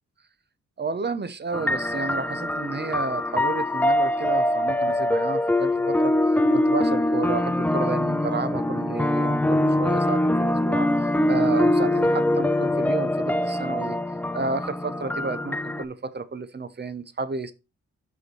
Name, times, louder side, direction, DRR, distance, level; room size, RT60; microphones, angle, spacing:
voice 1, 0.8-14.0 14.3-17.5, right 4 dB, 35° right, 0.8 m, -32 dB
sound 1, 1.5-15.8, left 1 dB, 5° left, 0.3 m, -23 dB
5.5 x 4.7 x 4.4 m
cardioid pair, 80°, 29 cm